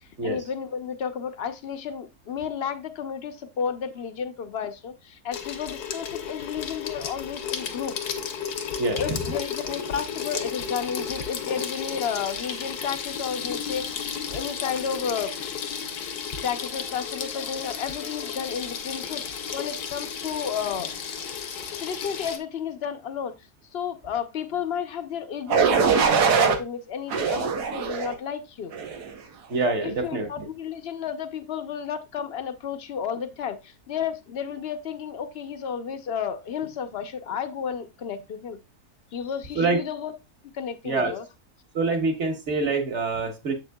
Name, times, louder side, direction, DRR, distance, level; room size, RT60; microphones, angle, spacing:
voice 1, 0.0-8.0 9.0-13.9 14.3-15.3 16.4-20.9 21.6-28.7 29.8-38.6 39.1-40.1 40.5-41.2, left 7 dB, 55° left, 9 dB, 0.7 m, -32 dB
Water tap faucet / Sink (filling or washing), 5.3-22.4, left 7 dB, 80° left, 1.4 m, -33 dB
voice 2, 8.8-9.2 29.5-30.5 39.5-39.8 40.8-41.1 41.7-43.5, right 3 dB, 50° right, 4 dB, 1.4 m, -25 dB
sound 1, 25.5-26.6 27.1-28.1 28.7-29.1, right 6 dB, 90° right, 1.5 m, -22 dB
7.5 x 6.3 x 2.2 m, 0.25 s
omnidirectional pair, 1.7 m